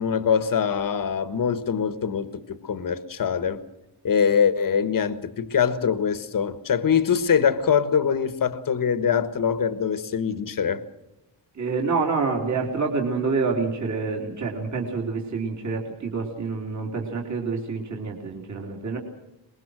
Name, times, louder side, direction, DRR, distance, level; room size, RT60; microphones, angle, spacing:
voice 1, 0.0-3.6 4.0-10.8, left 7 dB, 45° left, 1.5 m, -23 dB
voice 2, 11.5-19.0, right 4 dB, 35° right, 3.2 m, -27 dB
24.0 x 21.0 x 6.3 m
wide cardioid pair, 175°, 47 cm